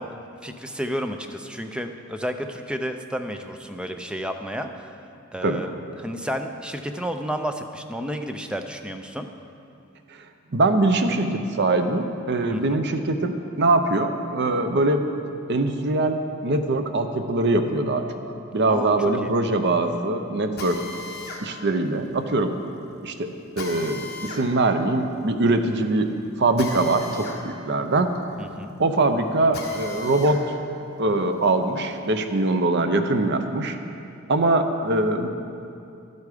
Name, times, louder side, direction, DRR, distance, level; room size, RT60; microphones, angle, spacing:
voice 1, 0.0-4.9 5.3-9.3 12.5-12.8 18.7-19.3 28.4-28.7, equal, 5° right, 6 dB, 0.5 m, -32 dB
voice 2, 10.5-15.0 15.5-18.0 18.5-20.8 21.4-22.5 23.0-26.1 26.4-28.1 28.8-30.4 31.0-33.8 34.3-35.3, right 2 dB, 55° right, 7 dB, 0.7 m, -22 dB
Drill, 20.6-30.4 30.8-32.5, left 3 dB, 50° left, 1.4 m, -39 dB
12.0 x 8.3 x 5.0 m, 2.6 s
head